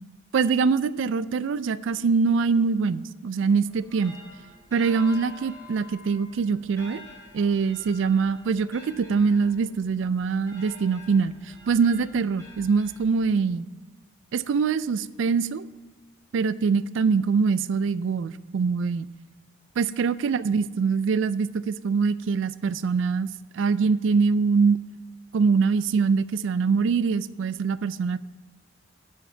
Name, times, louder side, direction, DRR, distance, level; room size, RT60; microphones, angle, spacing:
voice 1, 0.3-4.2 4.7-7.0 7.3-11.4 11.7-13.7 14.3-15.7 16.3-19.1 19.8-23.3 23.5-24.8 25.3-28.2, right 5 dB, 70° right, 16 dB, 0.3 m, -23 dB
sound 1, 3.6-13.6, left 2 dB, 15° left, 1.7 m, -48 dB
7.1 x 5.8 x 7.3 m, 1.3 s
head